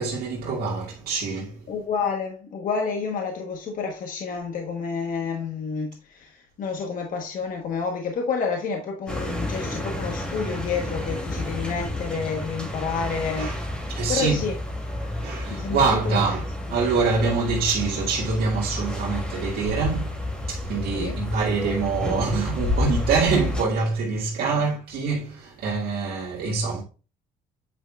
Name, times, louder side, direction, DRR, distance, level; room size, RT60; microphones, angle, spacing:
voice 1, 0.0-1.6 13.4-13.6 13.9-14.4 15.2-20.1 20.4-26.8, right 4 dB, 65° right, 2.1 m, -25 dB
voice 2, 1.7-14.5 15.5-15.8 16.0-16.2 20.9-21.2 24.4-24.6, left 5 dB, 55° left, 1.3 m, -29 dB
sound 1, 9.1-23.6, left 1 dB, 5° left, 2.8 m, -30 dB
9.0 x 5.3 x 2.4 m
cardioid pair, 110°, 17 cm